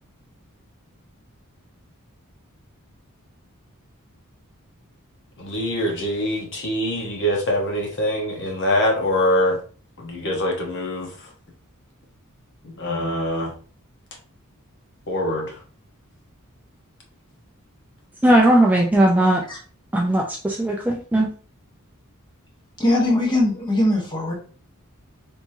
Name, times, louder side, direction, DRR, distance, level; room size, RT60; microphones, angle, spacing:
voice 1, 5.4-9.6 10.0-11.3 12.6-13.5 15.1-15.6, left 1 dB, 60° left, 1 dB, 1.0 m, -24 dB
voice 2, 18.2-19.4 19.9-21.3, right 1 dB, 5° right, -1 dB, 0.4 m, -18 dB
voice 3, 22.8-24.3, left 1 dB, 20° left, -1 dB, 1.1 m, -20 dB
3.6 x 2.9 x 2.6 m, 0.40 s
head